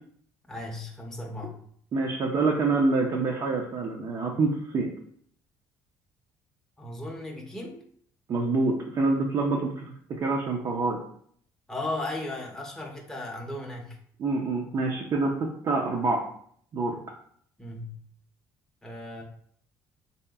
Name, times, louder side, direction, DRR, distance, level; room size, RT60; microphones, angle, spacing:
voice 1, 0.5-1.6 6.8-7.8 11.7-14.0 17.6-18.0 18.8-19.2, left 2 dB, 5° left, -1 dB, 0.6 m, -36 dB
voice 2, 1.9-4.9 8.3-11.0 14.2-16.2 16.7-17.0, right 3 dB, 50° right, -1 dB, 0.5 m, -26 dB
3.0 x 2.8 x 2.3 m, 0.63 s
supercardioid pair, 80°, 8 cm